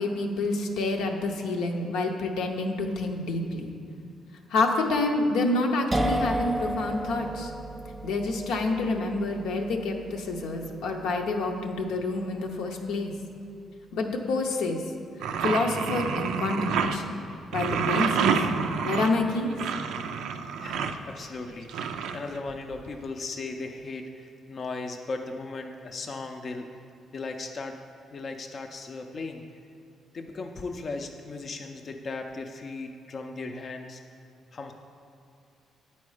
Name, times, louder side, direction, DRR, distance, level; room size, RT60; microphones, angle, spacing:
voice 1, 0.0-3.7 4.5-7.5 8.0-13.1 13.9-14.8 15.4-17.2 17.5-18.3 18.8-19.6, left 2 dB, 85° left, 2 dB, 0.7 m, -28 dB
sound 1, 5.9-13.5, right 1 dB, 20° right, 0.4 m, -34 dB
sound 2, 15.2-17.0 17.5-21.0 21.7-22.7, right 6 dB, 85° right, 0.3 m, -28 dB
voice 2, 20.6-26.7 27.1-27.8 28.1-29.4 30.1-34.0 34.5-34.7, left 3 dB, 45° left, 4 dB, 0.4 m, -37 dB
8.4 x 4.2 x 4.8 m, 2.6 s
cardioid pair, 90°, 0 cm